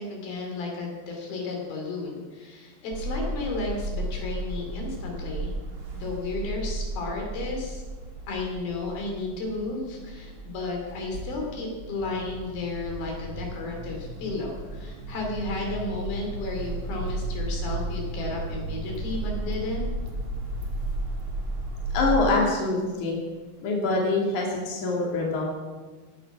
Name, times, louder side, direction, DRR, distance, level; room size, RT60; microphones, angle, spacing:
voice 1, 0.0-5.5 5.9-7.8 8.3-19.8, left 3 dB, 80° left, 0 dB, 4.8 m, -33 dB
sound 1, 2.9-22.2, right 1 dB, 40° right, 2.4 m, -34 dB
voice 2, 21.9-23.2 23.6-25.4, left 3 dB, 55° left, -2 dB, 4.0 m, -24 dB
16.0 x 11.5 x 6.2 m, 1.4 s
omnidirectional pair, 4.1 m